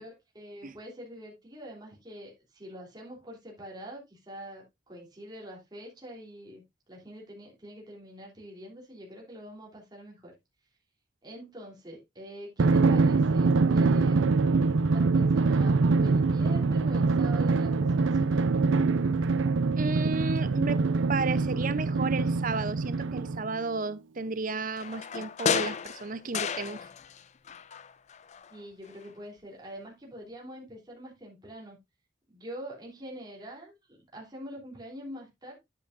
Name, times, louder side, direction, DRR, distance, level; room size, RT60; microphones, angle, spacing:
voice 1, 0.0-6.6 6.9-10.3 11.2-14.6 14.9-18.6 28.5-31.8 32.3-35.6, equal, 20° right, 3.3 m, -45 dB
Drum, 12.6-23.6, right 4 dB, 85° right, 0.5 m, -24 dB
voice 2, 19.8-20.8 21.1-26.8, right 3 dB, 45° right, 0.7 m, -33 dB
sound 1, 24.8-27.2 27.5-28.6 28.9-29.0, left 7 dB, 35° left, 0.4 m, -32 dB
9.7 x 8.8 x 2.6 m
head